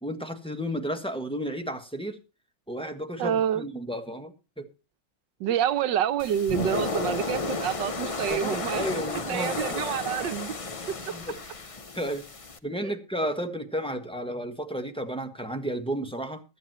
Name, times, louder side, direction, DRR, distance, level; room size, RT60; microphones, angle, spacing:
voice 1, 0.0-2.2 2.7-4.7 8.3-9.8 11.1-11.3 11.9-12.2 12.6-16.4, equal, 5° left, 1.3 m, -32 dB
voice 2, 3.2-3.6 5.4-8.9 9.3-10.6 10.9-11.2, right 9 dB, 80° right, 1.5 m, -27 dB
sound 1, 6.2-12.6, left 3 dB, 55° left, 0.3 m, -33 dB
16.5 x 12.0 x 3.0 m
omnidirectional pair, 1.9 m